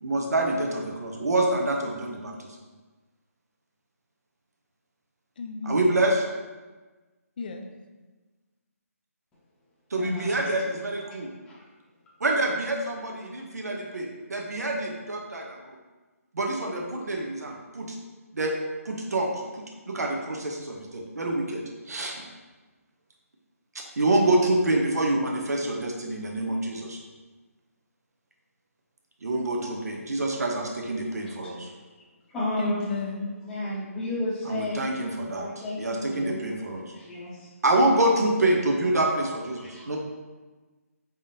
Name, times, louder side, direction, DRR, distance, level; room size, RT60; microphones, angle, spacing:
voice 1, 0.0-2.5 5.6-6.2 9.9-11.3 12.2-15.8 16.3-18.0 18.3-18.5 18.8-22.2 23.7-27.0 29.2-31.7 34.4-35.5 35.8-36.9 37.6-40.0, right 2 dB, 80° right, 1 dB, 0.8 m, -26 dB
voice 2, 5.4-5.9 7.4-7.7 32.6-33.4, left 3 dB, 35° left, 5 dB, 0.4 m, -33 dB
voice 3, 10.0-10.4 11.5-11.6 32.3-32.9 33.4-34.8 35.3-36.4 36.9-37.5 39.6-39.9, left 1 dB, 10° left, -8 dB, 0.7 m, -32 dB
5.5 x 3.5 x 2.7 m, 1.3 s
hypercardioid pair, 165°, 8 cm